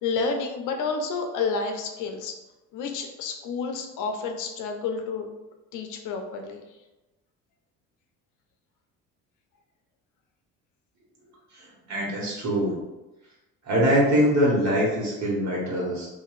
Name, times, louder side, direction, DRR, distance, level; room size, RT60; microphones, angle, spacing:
voice 1, 0.0-2.3 2.7-5.3 5.7-6.6, left 4 dB, 60° left, 4 dB, 0.5 m, -30 dB
voice 2, 11.5-12.8 13.6-16.1, equal, 55° right, -4 dB, 1.3 m, -23 dB
2.9 x 2.6 x 2.4 m, 1.0 s
supercardioid pair, 80°, 35 cm